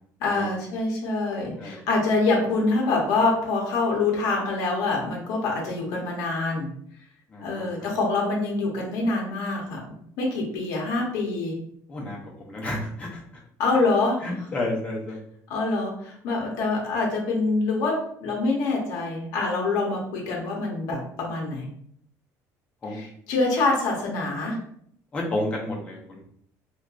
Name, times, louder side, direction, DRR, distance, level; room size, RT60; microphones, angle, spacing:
voice 1, 0.2-6.7 7.4-11.6 13.6-14.5 15.5-21.7 22.9-24.6, left 3 dB, 60° left, -1 dB, 0.6 m, -25 dB
voice 2, 7.3-7.7 11.9-12.2 12.5-13.2 14.2-15.2 22.8-23.0 25.1-26.0, left 1 dB, 20° left, -2 dB, 0.5 m, -30 dB
2.6 x 2.2 x 2.3 m, 0.66 s
cardioid pair, 175°, 7 cm